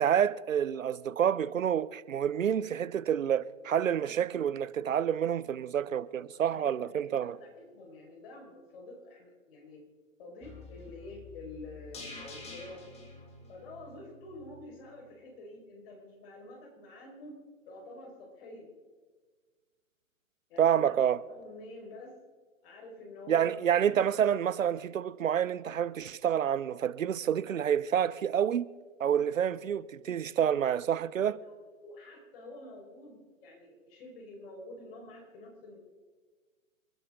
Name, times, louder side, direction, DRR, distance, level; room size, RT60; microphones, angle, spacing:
voice 1, 0.0-7.4 20.6-21.2 23.3-28.7 29.0-31.4, right 9 dB, 75° right, 0.9 m, -28 dB
voice 2, 6.5-9.8 10.2-12.9 13.5-17.3 17.7-18.7 20.5-20.9 21.3-22.1 22.6-23.6 31.4-31.5 31.8-35.8, left 2 dB, 45° left, 5.1 m, -48 dB
sound 1, 10.4-14.6 14.9-15.0, left 3 dB, 15° left, 2.4 m, -48 dB
29.0 x 10.5 x 3.8 m
hypercardioid pair, 135°, 40 cm